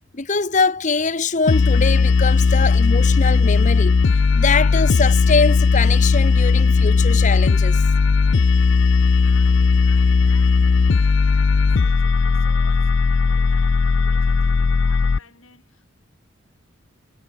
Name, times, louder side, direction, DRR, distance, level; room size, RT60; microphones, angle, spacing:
voice 1, 0.1-7.8, left 4 dB, 35° left, 1.1 m, -23 dB
sound 1, 1.5-15.2, left 4 dB, 60° left, 0.5 m, -16 dB
voice 2, 9.1-15.9, left 4 dB, 80° left, 7.9 m, -50 dB
head